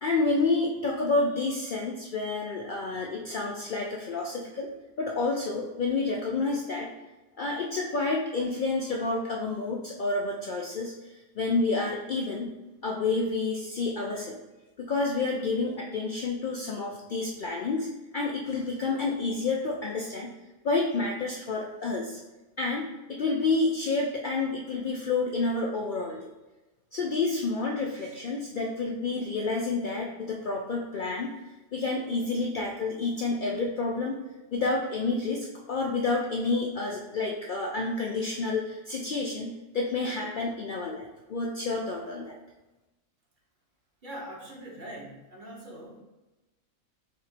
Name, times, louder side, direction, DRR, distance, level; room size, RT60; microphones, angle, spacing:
voice 1, 0.0-4.7 5.0-6.9 7.4-12.5 12.8-14.4 14.8-17.9 18.1-20.3 20.6-22.2 22.6-26.3 26.9-31.4 31.7-34.2 34.5-42.4, left 3 dB, 90° left, -1 dB, 0.4 m, -29 dB
voice 2, 44.0-46.0, right 1 dB, 40° right, -2 dB, 0.9 m, -42 dB
3.5 x 2.9 x 4.4 m, 1.1 s
omnidirectional pair, 1.4 m